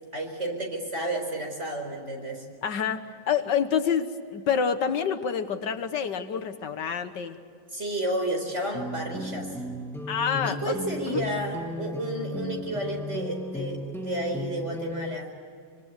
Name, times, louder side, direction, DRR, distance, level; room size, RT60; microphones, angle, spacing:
voice 1, 0.1-2.5 7.7-9.6 10.4-15.3, right 1 dB, 35° right, 3 dB, 4.8 m, -31 dB
voice 2, 2.6-7.4 10.1-10.7 11.1-11.2, left 7 dB, 70° left, 9 dB, 1.8 m, -27 dB
sound 1, 8.7-15.1, left 1 dB, ahead, 1.1 m, -35 dB
25.0 x 25.0 x 8.1 m, 2.2 s
omnidirectional pair, 2.0 m